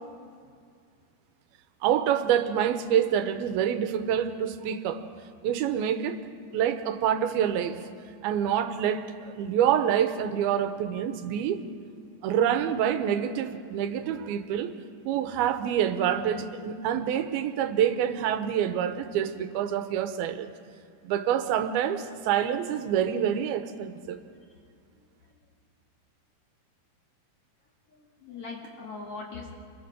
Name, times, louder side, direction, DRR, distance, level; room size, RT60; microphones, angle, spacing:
voice 1, 1.8-5.0 5.4-6.2 6.5-7.8 8.2-11.6 12.2-14.7 15.1-20.5 21.0-24.2, right 9 dB, 90° right, 10 dB, 2.8 m, -26 dB
voice 2, 27.9-29.5, left 4 dB, 45° left, -1 dB, 2.5 m, -40 dB
28.5 x 22.0 x 5.1 m, 2.2 s
omnidirectional pair, 4.3 m